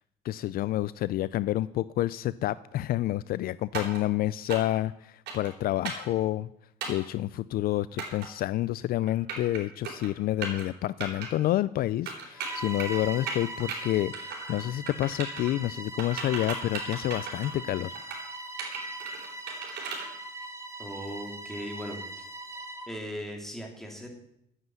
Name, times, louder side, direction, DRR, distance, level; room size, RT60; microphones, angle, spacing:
voice 1, 0.2-6.5 6.9-18.0, left 14 dB, 60° left, 17 dB, 0.4 m, -29 dB
sound 1, 3.7-4.0 4.5-4.8 5.3-5.5 5.8-6.1 6.8-7.1 8.0-8.3 9.0-9.6 9.8-10.1 10.4-10.6 11.0-11.3 12.1-13.0 13.3-13.8 14.1-14.6 14.9-15.5 16.0-17.6 17.9-18.2 18.6-20.1, right 5 dB, 80° right, 4.0 m, -36 dB
Bowed string instrument, 12.3-23.0, right 2 dB, 15° right, 2.3 m, -40 dB
voice 2, 20.8-22.3 22.9-24.1, equal, ahead, 1 dB, 3.1 m, -38 dB
9.7 x 8.1 x 9.1 m, 0.77 s
cardioid pair, 110°, 17 cm